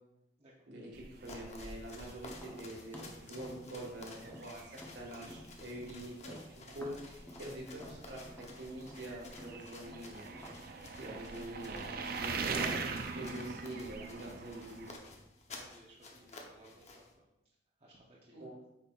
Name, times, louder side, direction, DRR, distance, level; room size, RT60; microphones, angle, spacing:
voice 1, 0.7-10.2 11.0-12.8 13.1-14.9 18.3-18.5, right 1 dB, 70° right, -1 dB, 1.7 m, -45 dB
sound 1, 0.9-14.9, right 4 dB, 50° right, 0.5 m, -43 dB
sound 2, 1.1-17.1, left 2 dB, 35° left, 0.9 m, -53 dB
Tap, 2.3-5.9 6.2-10.6, equal, 10° left, 0.9 m, -52 dB
voice 2, 15.5-17.3 17.8-18.5, right 1 dB, 35° right, -5 dB, 0.9 m, -60 dB
8.4 x 5.4 x 2.4 m, 0.91 s
head